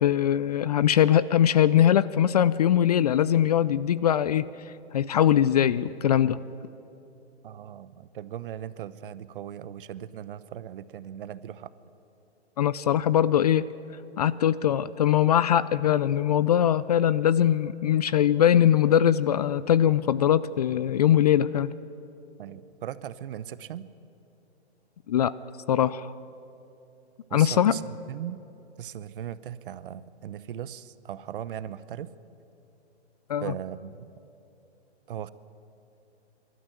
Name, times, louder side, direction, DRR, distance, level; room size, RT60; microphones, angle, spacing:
voice 1, 0.0-4.4 4.9-6.4 12.6-13.6 14.2-21.7 25.1-25.3 25.7-26.1 27.3-27.7 33.3-33.4, left 10 dB, 40° left, 18 dB, 0.4 m, -21 dB
voice 2, 7.4-11.7 22.4-23.9 27.3-28.4 28.8-32.1 33.4-34.1 35.1-35.3, right 10 dB, 55° right, 16 dB, 0.8 m, -38 dB
23.5 x 12.5 x 9.2 m, 2.8 s
hypercardioid pair, 145°, 33 cm